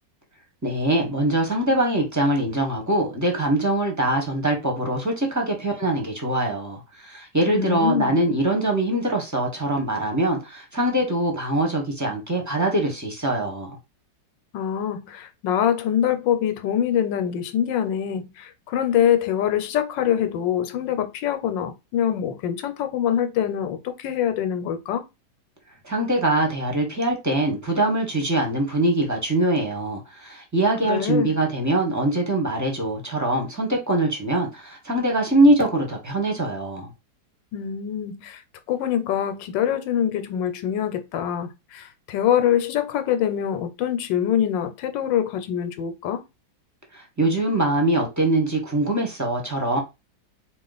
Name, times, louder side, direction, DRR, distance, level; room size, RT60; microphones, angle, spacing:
voice 1, 0.6-13.8 25.8-36.9 46.9-49.8, right 1 dB, 10° right, 0.9 m, -23 dB
voice 2, 7.5-8.2 14.5-25.0 30.8-31.3 37.5-38.4 38.7-46.2, left 9 dB, 85° left, 1.4 m, -24 dB
4.4 x 2.5 x 3.9 m
omnidirectional pair, 1.9 m